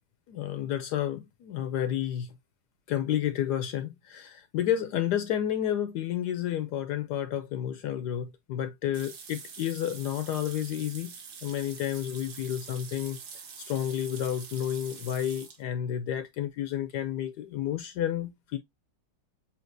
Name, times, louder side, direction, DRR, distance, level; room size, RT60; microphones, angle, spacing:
voice 1, 0.3-2.3 2.9-11.1 11.4-18.6, left 11 dB, 75° left, 1.1 m, -31 dB
sound 1, 8.9-15.6, right 6 dB, 60° right, 1.5 m, -45 dB
7.1 x 2.8 x 2.5 m
omnidirectional pair, 2.0 m